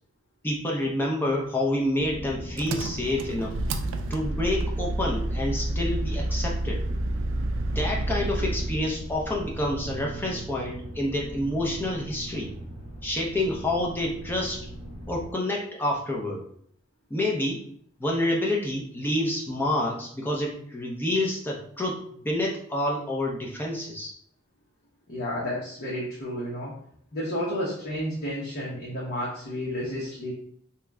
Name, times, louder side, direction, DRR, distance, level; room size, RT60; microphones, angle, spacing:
voice 1, 0.4-3.6 4.1-6.8 7.8-12.5 13.0-14.6 15.1-16.4 17.1-17.7 18.0-24.1, left 1 dB, 10° left, -2 dB, 0.6 m, -28 dB
sound 1, 2.0-15.3, right 1 dB, 35° left, 1.1 m, -39 dB
Engine, 2.6-8.9, right 1 dB, 60° right, 0.3 m, -29 dB
voice 2, 25.1-26.7 27.1-30.3, equal, 50° left, -7 dB, 0.9 m, -31 dB
2.9 x 2.2 x 3.5 m, 0.64 s
head